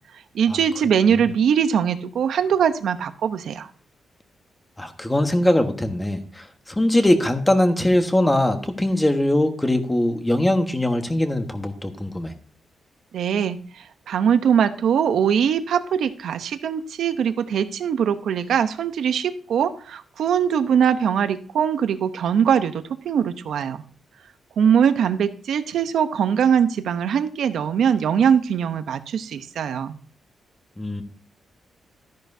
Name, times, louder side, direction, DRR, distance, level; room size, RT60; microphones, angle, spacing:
voice 1, 0.3-3.7 13.1-13.6 14.1-23.8 24.6-30.0, right 8 dB, 80° right, 10 dB, 0.8 m, -21 dB
voice 2, 4.8-12.3 30.8-31.0, left 1 dB, 10° left, 6 dB, 1.4 m, -21 dB
13.0 x 10.5 x 2.7 m, 0.44 s
cardioid pair, 110°, 0 cm